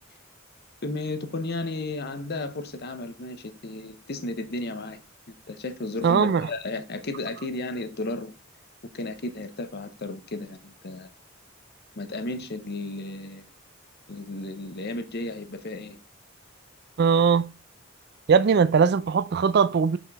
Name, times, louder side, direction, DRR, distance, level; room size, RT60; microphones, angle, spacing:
voice 1, 0.8-5.0 5.3-8.3 8.9-11.1 12.0-13.5 14.1-16.0, left 2 dB, 50° left, 0.8 m, -34 dB
voice 2, 6.0-6.5 17.0-17.5 18.3-20.0, right 6 dB, 55° right, 0.4 m, -20 dB
5.9 x 5.2 x 3.5 m
head